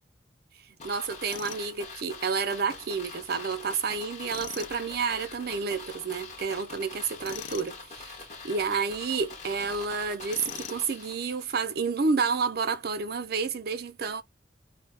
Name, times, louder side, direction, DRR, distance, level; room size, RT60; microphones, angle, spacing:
sound 1, 0.8-11.7 12.0-12.1, left 4 dB, 40° left, 0.8 m, -44 dB
voice 1, 0.8-8.2 8.4-14.2, right 5 dB, 55° right, 0.5 m, -30 dB
Tools, 1.3-1.7 4.3-4.7 7.2-7.7 10.3-10.9, left 8 dB, 75° left, 0.4 m, -41 dB
2.3 x 2.0 x 3.2 m
head